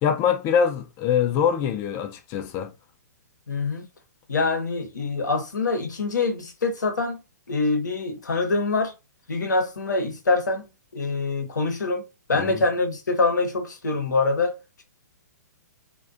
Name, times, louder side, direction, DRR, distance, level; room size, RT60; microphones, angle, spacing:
voice 1, 0.0-2.7 12.3-12.6, left 7 dB, 25° left, 0.3 m, -24 dB
voice 2, 3.5-3.8 4.3-7.2 7.5-8.9 9.3-10.7 10.9-12.0 12.3-14.8, left 3 dB, 80° left, 0.7 m, -25 dB
2.4 x 2.2 x 2.3 m
figure-of-eight pair, 120°, 10 cm